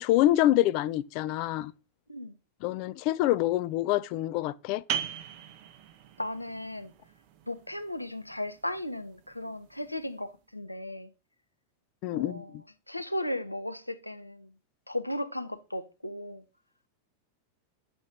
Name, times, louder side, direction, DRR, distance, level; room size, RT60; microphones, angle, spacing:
voice 1, 0.0-1.7 2.6-4.8 12.0-12.6, left 14 dB, 45° left, 0.3 m, -26 dB
sound 1, 4.9-10.3, right 9 dB, 45° right, 0.7 m, -40 dB
voice 2, 6.2-6.9 7.5-11.1 12.1-12.5 12.9-14.5 14.9-16.4, left 1 dB, 90° left, 0.6 m, -36 dB
7.3 x 4.3 x 3.4 m
figure-of-eight pair, 90°, 0 cm